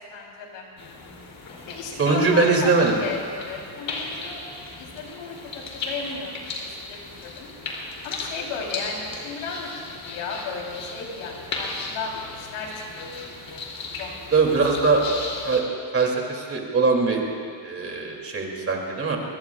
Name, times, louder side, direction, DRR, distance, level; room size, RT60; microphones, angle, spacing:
voice 1, 0.1-0.7 1.6-2.7 3.0-4.4 4.8-7.5 8.0-13.6 14.0-14.3 14.8-15.2, left 4 dB, 85° left, -1 dB, 3.8 m, -35 dB
sound 1, 0.8-15.6, left 3 dB, 40° left, 3.1 m, -36 dB
voice 2, 2.0-3.0 14.3-15.0 15.4-15.6 15.9-17.2 17.6-19.2, right 4 dB, 25° right, 0 dB, 2.8 m, -21 dB
24.0 x 21.5 x 2.4 m, 2.1 s
cardioid pair, 130°, 49 cm